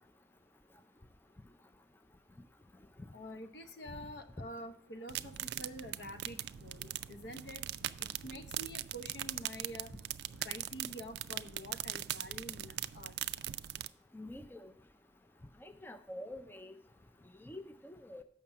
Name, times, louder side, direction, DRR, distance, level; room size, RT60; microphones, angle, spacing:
voice 1, 3.1-7.6 8.0-9.9 10.4-13.1, equal, 70° left, 8 dB, 0.8 m, -47 dB
sound 1, 5.1-13.9, right 13 dB, 65° right, 0.3 m, -41 dB
voice 2, 14.1-14.7 15.6-16.7 17.4-18.2, left 1 dB, 10° left, 9 dB, 0.4 m, -47 dB
7.3 x 5.9 x 5.6 m, 0.72 s
head